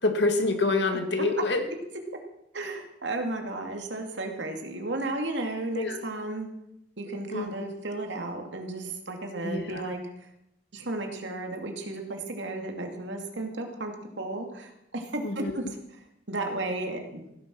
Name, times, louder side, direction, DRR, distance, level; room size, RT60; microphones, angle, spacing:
voice 1, 0.0-1.6 5.7-6.0 7.3-7.5 9.4-9.8 15.2-15.5, left 2 dB, 65° left, 5 dB, 2.1 m, -26 dB
voice 2, 0.9-1.3 2.5-6.5 7.0-10.3 10.7-16.0 16.3-17.2, right 2 dB, 70° right, 3 dB, 2.5 m, -34 dB
16.0 x 10.5 x 6.1 m, 0.82 s
head